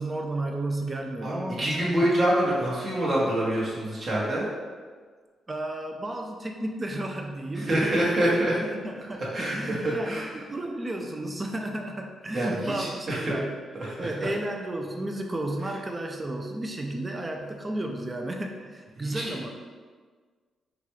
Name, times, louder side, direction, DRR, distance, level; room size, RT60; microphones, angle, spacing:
voice 1, 0.0-2.1 5.5-8.1 8.6-13.6 14.0-19.5, right 1 dB, 25° right, 3 dB, 0.4 m, -33 dB
voice 2, 1.2-4.5 7.6-8.5 9.3-10.3 12.3-13.2 13.8-14.1 19.0-19.4, right 1 dB, 45° right, -6 dB, 1.2 m, -26 dB
3.9 x 2.3 x 3.0 m, 1.5 s
cardioid pair, 75°, 0 cm